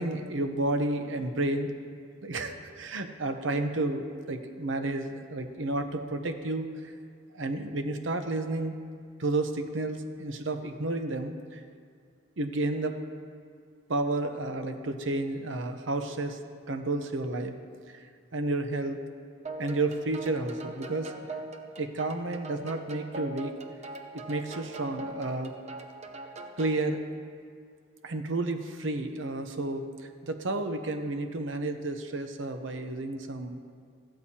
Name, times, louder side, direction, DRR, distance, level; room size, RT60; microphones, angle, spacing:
voice 1, 0.0-1.7 2.2-6.9 7.3-8.7 9.2-11.6 12.4-13.0 13.9-16.4 16.7-17.5 17.9-19.0 19.6-21.1 21.8-23.5 24.1-25.5 26.6-27.0 28.0-29.8 30.2-33.6, right 2 dB, 75° right, 7 dB, 0.8 m, -31 dB
sound 1, 19.5-26.8, right 2 dB, 35° right, 0.8 m, -41 dB
15.0 x 13.0 x 2.9 m, 2.2 s
head